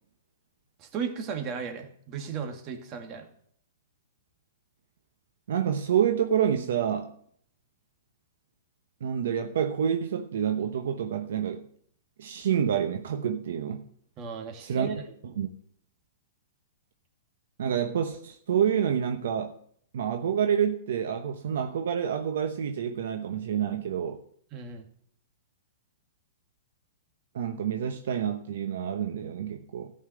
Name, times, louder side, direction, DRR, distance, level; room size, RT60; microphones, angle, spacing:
voice 1, 0.8-3.3 14.2-15.0 24.5-24.9, right 6 dB, 35° right, 2.1 m, -35 dB
voice 2, 5.5-7.1 9.0-11.6 12.2-13.9 14.6-14.9 15.4-15.5 17.6-19.5 19.9-24.2 27.3-29.9, right 8 dB, 70° right, 1.0 m, -28 dB
13.5 x 5.6 x 7.7 m
hypercardioid pair, 130°, 0 cm